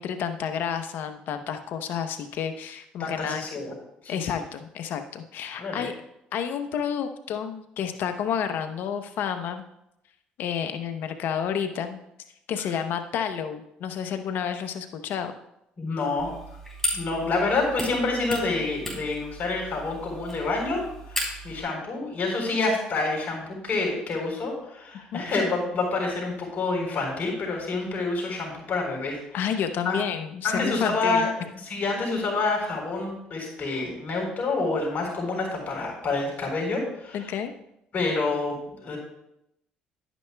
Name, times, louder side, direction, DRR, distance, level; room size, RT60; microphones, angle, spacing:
voice 1, 0.0-3.4 4.1-5.9 6.3-9.6 10.4-12.0 12.5-15.3 25.1-25.3 29.3-31.3 37.1-37.5, left 8 dB, 70° left, 8 dB, 0.9 m, -30 dB
voice 2, 3.0-3.7 4.0-4.3 5.5-5.9 15.8-16.3 16.9-20.8 21.1-29.5 29.8-30.0 30.4-31.3 31.6-37.3 37.9-39.0, left 3 dB, 50° left, 0 dB, 3.8 m, -28 dB
sound 1, 16.2-21.6, left 1 dB, 10° left, 3.8 m, -35 dB
11.5 x 9.1 x 2.3 m, 0.83 s
supercardioid pair, 70°, 4 cm